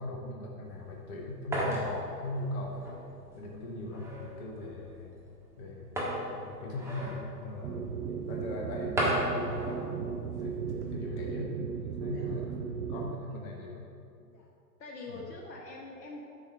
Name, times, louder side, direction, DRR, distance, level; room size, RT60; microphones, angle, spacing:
voice 1, 0.0-2.9 3.3-5.2 5.6-7.9 8.3-12.5 12.9-13.9 15.1-15.3, left 1 dB, 10° left, -1 dB, 0.4 m, -39 dB
sound 1, 0.6-11.1, equal, 5° right, 1.5 m, -37 dB
sound 2, 7.6-13.2, right 6 dB, 65° right, 0.8 m, -36 dB
voice 2, 14.8-16.2, left 3 dB, 75° left, -2 dB, 1.3 m, -45 dB
9.7 x 4.3 x 6.1 m, 2.4 s
hypercardioid pair, 125°, 50 cm